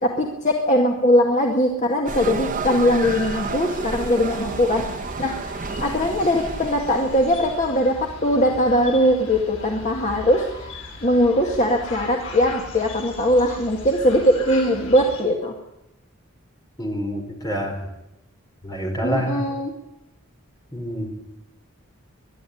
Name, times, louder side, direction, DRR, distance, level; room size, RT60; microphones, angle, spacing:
voice 1, 0.0-4.8 5.2-10.7 11.0-15.5 19.0-19.7, equal, 35° left, 1 dB, 1.9 m, -20 dB
sound 1, 2.1-7.7, right 3 dB, 40° right, 1.2 m, -31 dB
sound 2, 3.0-15.2, left 2 dB, 85° left, 6.4 m, -38 dB
voice 2, 16.8-17.8 18.6-19.4 20.7-21.1, equal, 20° left, 2 dB, 4.9 m, -27 dB
22.5 x 12.0 x 10.0 m, 0.90 s
head